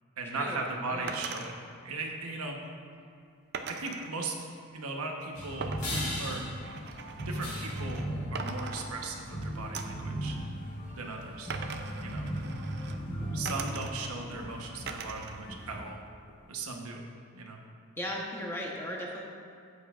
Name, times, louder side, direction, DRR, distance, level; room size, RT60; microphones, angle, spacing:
voice 1, 0.2-1.5 1.8-2.6 3.7-4.4 4.7-5.8 6.2-6.4 7.3-10.4 11.0-11.5 12.0-12.3 13.3-16.0 16.5-17.0 17.3-17.6, right 3 dB, 85° right, 1 dB, 1.1 m, -37 dB
sound 1, 1.1-1.5 3.5-4.1 5.6-8.1 8.3-9.3 9.7-10.1 11.5-13.0 13.4-14.2 14.9-15.4 15.7-16.5, right 5 dB, 50° right, 0.5 m, -41 dB
sound 2, 5.4-15.8, equal, 35° left, 1.9 m, -37 dB
voice 2, 18.0-19.2, equal, 10° left, -2 dB, 1.0 m, -36 dB
13.0 x 8.3 x 2.5 m, 2.5 s
head